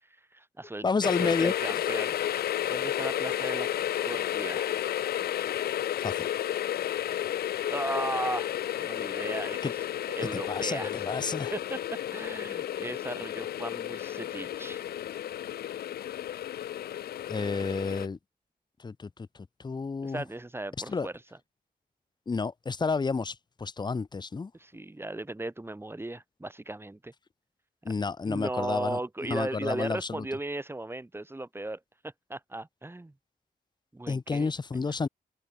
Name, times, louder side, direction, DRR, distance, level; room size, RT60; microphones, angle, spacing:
voice 1, 0.3-4.8 7.7-9.9 10.2-11.0 11.5-11.8 12.1-14.8 20.0-21.1 24.5-27.1 27.8-27.9 28.2-33.1 33.9-34.9, right 2 dB, 15° right, 1.6 m, -37 dB
voice 2, 0.8-1.5 6.0-6.3 9.6-9.7 10.2-11.5 17.3-18.2 18.8-19.1 19.6-20.2 20.9-21.1 22.3-24.5 27.8-29.0 29.3-30.2 34.1-35.1, left 4 dB, 30° left, 0.6 m, -30 dB
sound 1, 1.0-18.1, left 11 dB, 90° left, 0.4 m, -32 dB
wide cardioid pair, 100°, 16 cm